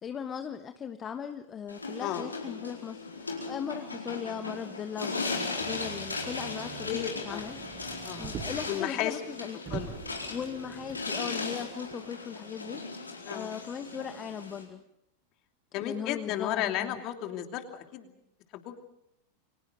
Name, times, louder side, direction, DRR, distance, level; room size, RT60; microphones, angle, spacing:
voice 1, 0.0-7.6 8.2-10.0 10.3-14.8 15.7-17.0, left 7 dB, 25° left, 8 dB, 1.2 m, -39 dB
sound 1, 1.7-14.7, left 3 dB, 80° left, 4.4 m, -37 dB
Motor vehicle (road), 5.6-8.7 9.2-9.3 9.6-11.1 11.9-12.0, right 7 dB, 35° right, 6.4 m, -43 dB
voice 2, 6.9-7.4 8.0-8.3 8.7-9.2 9.7-10.0 13.2-13.5 15.7-17.6 17.9-18.1 18.5-18.8, left 12 dB, 40° left, 5 dB, 2.9 m, -33 dB
29.5 x 24.5 x 5.3 m, 0.77 s
figure-of-eight pair, 90°, 0 cm